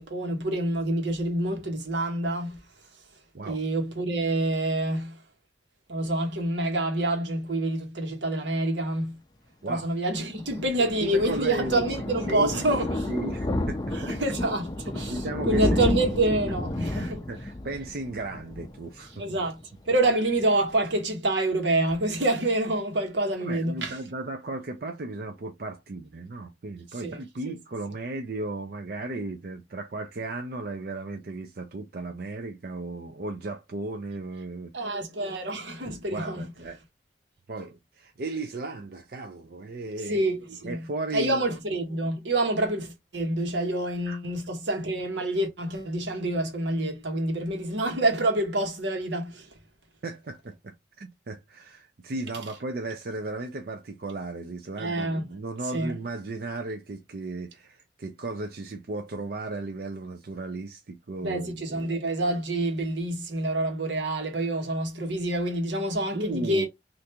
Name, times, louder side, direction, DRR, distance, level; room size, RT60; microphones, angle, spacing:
voice 1, 0.0-2.6 3.4-5.2 5.9-9.2 9.7-13.1 13.9-15.2 15.5-17.2 19.2-19.6 19.9-24.0 27.0-27.2 27.5-27.6 34.7-36.4 40.1-40.8 41.1-49.5 54.8-55.2 55.7-55.9 61.2-66.7, right 1 dB, 85° right, 1.2 m, -27 dB
Thunder, 10.1-19.5 19.8-20.1 20.4-20.5 20.7-20.8, left 1 dB, 20° left, 0.4 m, -31 dB
voice 2, 10.8-12.6 13.1-14.1 15.1-15.8 16.9-19.2 23.4-34.9 36.1-36.8 37.5-40.2 40.6-41.4 44.1-44.2 50.0-61.9 66.1-66.6, right 2 dB, 55° right, 0.5 m, -35 dB
3.3 x 2.6 x 2.8 m
head